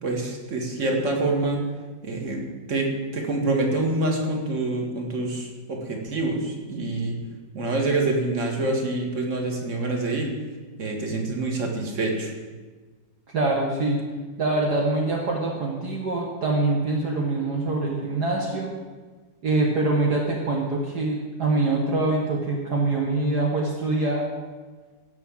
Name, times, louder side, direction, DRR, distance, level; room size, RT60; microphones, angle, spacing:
voice 1, 0.0-1.6 2.0-2.4 2.7-7.2 7.5-10.3 10.8-12.3, right 2 dB, 40° right, 1 dB, 2.2 m, -26 dB
voice 2, 13.3-14.0 14.4-18.7 19.4-24.2, right 2 dB, 60° right, -1 dB, 2.0 m, -24 dB
16.5 x 6.2 x 7.3 m, 1.3 s
omnidirectional pair, 2.1 m